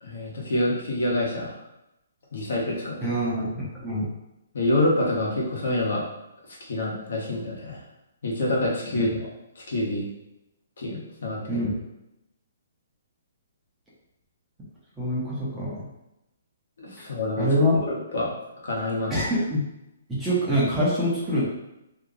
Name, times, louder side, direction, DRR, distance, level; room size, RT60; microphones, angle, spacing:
voice 1, 0.0-1.5 2.3-3.2 4.5-6.0 6.6-7.8 8.2-9.1 9.5-10.0 10.8-11.6 16.8-17.5 17.9-18.3 18.6-19.1, left 1 dB, 70° left, -4 dB, 1.2 m, -27 dB
voice 2, 3.0-4.1 8.9-9.1 11.5-11.7 15.0-15.9 17.4-17.8 19.1-19.6 20.1-21.4, equal, 5° right, -9 dB, 0.9 m, -25 dB
2.9 x 2.4 x 3.8 m, 0.90 s
hypercardioid pair, 165°, 0 cm